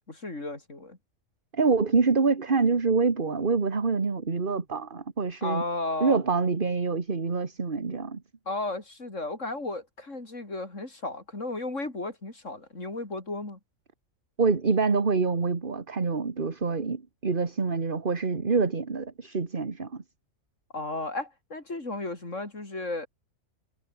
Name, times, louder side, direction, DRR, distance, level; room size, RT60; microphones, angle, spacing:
voice 1, 0.1-1.0 5.4-6.2 8.5-13.6 20.7-23.1, left 2 dB, 65° left, 5.0 m, -34 dB
voice 2, 1.5-5.6 6.0-8.2 14.4-20.0, right 4 dB, 40° right, 1.9 m, -26 dB
omnidirectional pair, 1.4 m